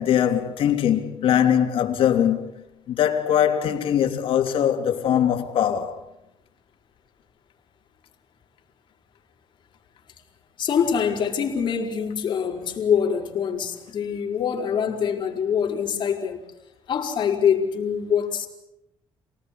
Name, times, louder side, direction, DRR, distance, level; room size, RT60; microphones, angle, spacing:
voice 1, 0.0-2.5 2.9-6.0, left 9 dB, 75° left, 3.3 m, -21 dB
voice 2, 10.6-16.4 16.9-18.5, left 7 dB, 55° left, 4.7 m, -24 dB
28.0 x 18.5 x 8.6 m
cardioid pair, 130°, 9 cm